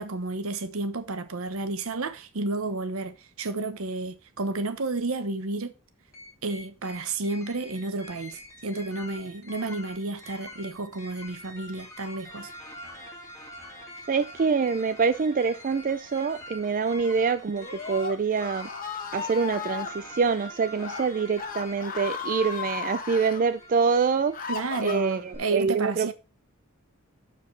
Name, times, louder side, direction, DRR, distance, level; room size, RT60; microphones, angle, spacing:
voice 1, 0.0-5.7 6.4-12.5 24.5-26.1, right 3 dB, 75° right, 1.0 m, -31 dB
sound 1, 6.1-25.6, left 1 dB, 15° left, 2.0 m, -45 dB
voice 2, 14.1-18.7 19.1-24.4 24.8-26.1, right 5 dB, 40° right, 0.4 m, -25 dB
Screaming, 17.5-19.9 20.7-21.0 21.3-23.4 24.0-25.4, left 5 dB, 40° left, 1.3 m, -35 dB
12.5 x 5.0 x 3.2 m
head